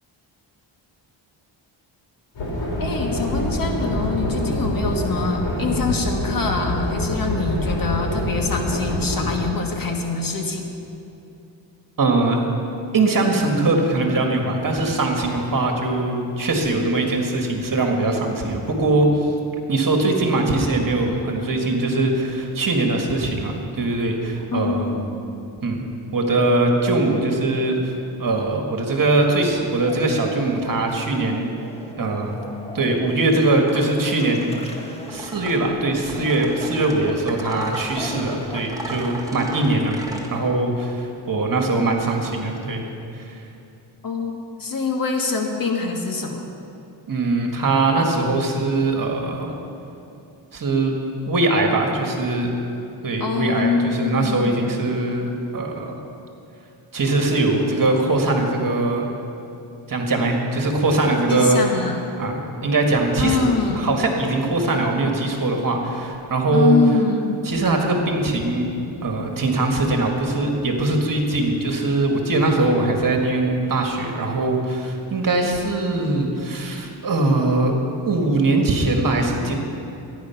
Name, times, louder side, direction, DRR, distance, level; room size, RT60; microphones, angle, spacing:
sound 1, 2.3-9.4, left 1 dB, 70° left, 3.4 m, -25 dB
voice 1, 2.8-10.7 24.5-25.2 44.0-46.4 53.2-54.8 61.3-62.0 63.2-63.9 66.5-67.5, left 4 dB, 50° left, 2 dB, 1.6 m, -24 dB
voice 2, 12.0-12.4 12.9-19.3 19.7-24.9 25.6-25.8 26.1-27.9 28.2-31.5 32.0-32.4 32.7-34.5 35.1-42.8 43.2-43.4 47.1-49.5 50.5-51.0 51.2-52.6 53.0-56.0 56.9-59.0 59.9-61.6 62.2-63.5 63.8-66.8 67.4-68.7 69.0-77.7 78.1-79.6, right 2 dB, 45° right, 2 dB, 1.9 m, -21 dB
sound 2, 29.8-40.6, left 1 dB, 15° left, 1.4 m, -39 dB
sound 3, 35.1-40.3, right 1 dB, 5° right, 1.8 m, -36 dB
13.0 x 10.0 x 5.8 m, 2.8 s
cardioid pair, 95°, 45 cm